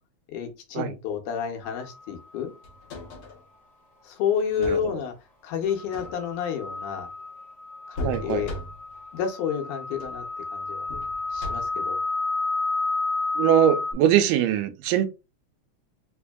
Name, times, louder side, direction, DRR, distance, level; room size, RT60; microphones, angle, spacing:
voice 1, 0.3-2.5 4.0-5.1 5.4-7.1 7.9-8.5 9.1-10.2 10.5-10.9 11.3-12.0, left 7 dB, 80° left, 2.1 m, -30 dB
sound 1, 1.6-2.0 5.7-13.9, left 3 dB, 40° left, 0.9 m, -31 dB
sound 2, 2.6-3.4 4.4-5.0 5.8-6.5 8.0-9.0 9.9-10.3 10.9-11.9 13.6-13.7, left 1 dB, 60° left, 1.5 m, -37 dB
voice 2, 8.0-8.5 13.4-15.1, right 10 dB, 90° right, 2.1 m, -22 dB
5.0 x 2.6 x 2.2 m
omnidirectional pair, 3.5 m